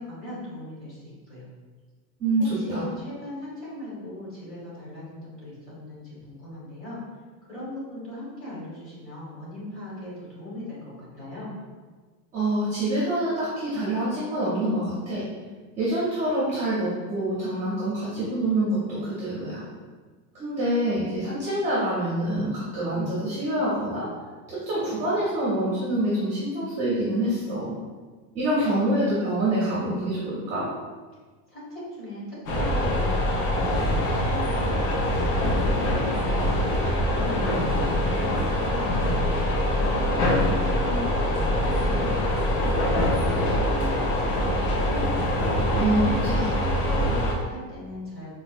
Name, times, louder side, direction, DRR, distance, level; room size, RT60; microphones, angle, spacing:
voice 1, 0.0-1.5 2.5-7.0 7.4-11.5 31.5-45.1 45.8-48.3, left 1 dB, 25° left, -8 dB, 1.3 m, -39 dB
voice 2, 2.2-2.8 12.3-15.2 15.8-19.6 20.3-24.1 24.5-27.7 28.3-30.7 45.7-46.5, right 1 dB, 15° right, -10 dB, 0.5 m, -26 dB
sound 1, 32.5-47.3, left 1 dB, 70° left, 0.9 m, -24 dB
4.3 x 2.2 x 2.4 m, 1.4 s
supercardioid pair, 160°, 48 cm